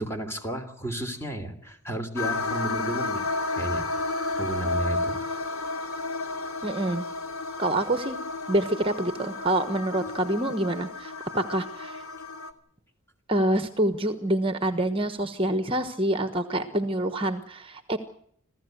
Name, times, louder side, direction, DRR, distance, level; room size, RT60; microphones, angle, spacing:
voice 1, 0.0-3.2 3.5-3.9 4.4-5.2, right 1 dB, 10° left, 7 dB, 3.2 m, -32 dB
sound 1, 2.2-12.5, left 2 dB, 85° left, 2.6 m, -32 dB
voice 2, 6.6-7.1 7.6-8.2 8.5-12.0 13.3-18.0, right 1 dB, 25° right, 10 dB, 1.2 m, -26 dB
27.0 x 16.0 x 7.9 m, 0.67 s
head